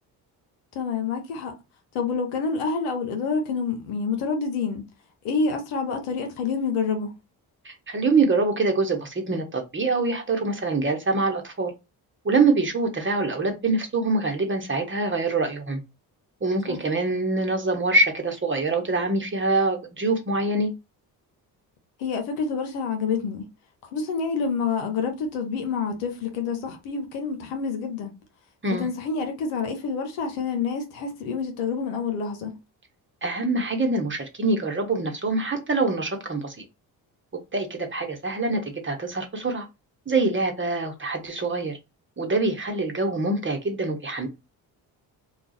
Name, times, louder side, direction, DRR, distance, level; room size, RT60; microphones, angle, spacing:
voice 1, 0.7-1.5 1.9-4.8 5.2-7.1 16.7-16.8 22.0-23.4 23.9-28.1 28.7-32.6, left 5 dB, 85° left, 0.9 m, -27 dB
voice 2, 7.6-11.7 12.2-15.8 16.4-20.7 28.6-28.9 33.2-36.6 37.5-39.6 40.1-41.8 42.2-44.3, right 3 dB, 25° right, 1.0 m, -24 dB
2.4 x 2.4 x 4.0 m
hypercardioid pair, 50°, 49 cm